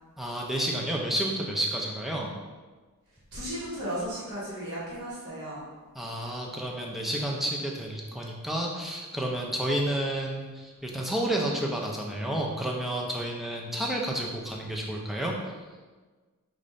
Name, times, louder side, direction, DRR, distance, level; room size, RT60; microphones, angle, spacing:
voice 1, 0.2-2.3 6.0-15.4, right 1 dB, ahead, -2 dB, 0.5 m, -30 dB
voice 2, 3.3-5.6, equal, 75° right, -8 dB, 1.2 m, -35 dB
5.3 x 2.5 x 3.2 m, 1.3 s
head